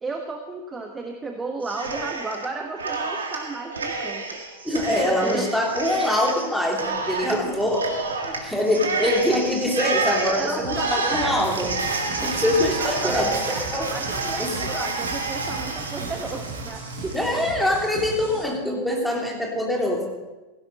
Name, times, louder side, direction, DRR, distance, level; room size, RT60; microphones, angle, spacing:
voice 1, 0.0-4.4 4.7-5.6 7.3-7.6 8.2-8.9 10.3-11.6 12.8-17.2, right 3 dB, 15° right, 4 dB, 1.2 m, -34 dB
Cheering, 1.6-2.5 2.8-17.3, right 3 dB, 70° right, 2.0 m, -29 dB
voice 2, 4.6-7.8 8.2-11.7 12.2-13.4 13.7-13.9 14.4-14.5 17.1-20.1, left 1 dB, ahead, -2 dB, 3.3 m, -24 dB
sound 1, 10.6-18.4, right 3 dB, 50° right, 6.2 m, -37 dB
16.5 x 16.5 x 4.1 m, 1.1 s
figure-of-eight pair, 90°, 0 cm